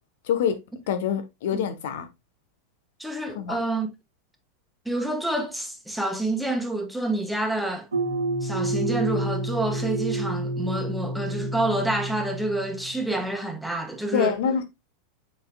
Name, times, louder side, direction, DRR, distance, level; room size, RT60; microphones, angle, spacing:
voice 1, 0.2-0.6 0.9-2.1 3.3-3.6 14.1-14.7, left 8 dB, 60° left, 1.1 m, -25 dB
voice 2, 3.0-3.9 4.8-7.9 8.4-14.4, right 2 dB, ahead, 1.4 m, -28 dB
sound 1, 7.9-13.1, right 1 dB, 80° right, 1.4 m, -29 dB
7.4 x 5.6 x 2.3 m
figure-of-eight pair, 90°, 0 cm